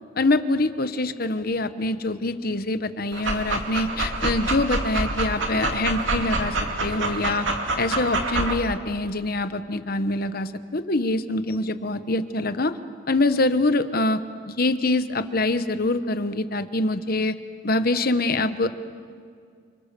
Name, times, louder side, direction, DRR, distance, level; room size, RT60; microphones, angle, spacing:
voice 1, 0.2-6.5 6.8-7.5 7.8-12.7 13.1-14.2 14.6-17.4 17.6-18.7, left 2 dB, 45° left, 11 dB, 1.0 m, -24 dB
Dog, 3.1-8.6, right 2 dB, 65° right, 2.7 m, -27 dB
29.0 x 26.5 x 6.9 m, 2.2 s
head